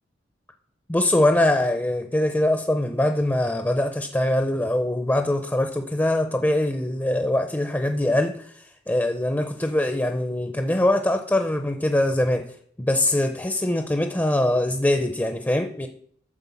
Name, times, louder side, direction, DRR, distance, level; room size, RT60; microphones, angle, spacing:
voice 1, 0.9-12.5 12.8-15.9, left 1 dB, 10° left, 0.6 m, -23 dB
12.0 x 4.4 x 7.1 m
head